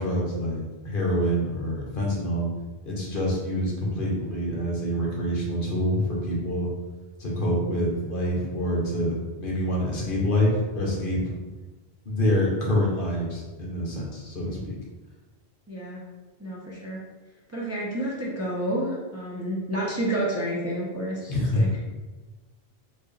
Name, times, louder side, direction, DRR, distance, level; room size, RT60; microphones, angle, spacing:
voice 1, 0.0-2.5 2.8-6.7 7.2-11.3 12.1-14.7 21.3-21.8, equal, 55° left, -3 dB, 1.0 m, -26 dB
voice 2, 15.7-16.0 16.4-17.0 17.5-21.8, right 1 dB, 20° right, -6 dB, 0.6 m, -30 dB
4.4 x 2.4 x 3.1 m, 1.2 s
omnidirectional pair, 1.1 m